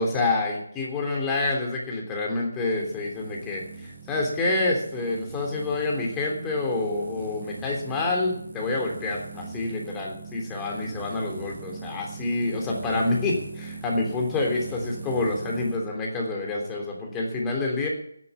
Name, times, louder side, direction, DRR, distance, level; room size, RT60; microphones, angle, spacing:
voice 1, 0.0-17.9, left 2 dB, 10° left, -1 dB, 3.3 m, -27 dB
sound 1, 2.7-15.8, right 4 dB, 40° right, 6.3 m, -41 dB
13.5 x 11.0 x 7.4 m, 0.70 s
figure-of-eight pair, 155°, 0 cm